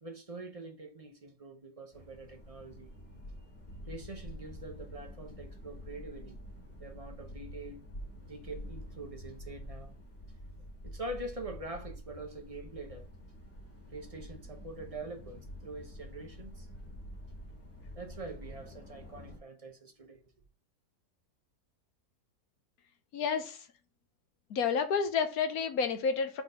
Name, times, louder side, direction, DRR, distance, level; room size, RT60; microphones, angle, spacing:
voice 1, 0.0-2.9 3.4-3.5 3.9-6.4 6.8-7.8 8.3-9.9 10.8-13.1 13.9-16.7 17.9-20.2, right 2 dB, 30° right, 0.8 m, -44 dB
sound 1, 1.9-19.4, equal, 40° left, 1.9 m, -47 dB
voice 2, 23.1-23.6 24.5-26.4, left 6 dB, 70° left, 1.3 m, -30 dB
4.7 x 4.0 x 5.4 m
omnidirectional pair, 1.6 m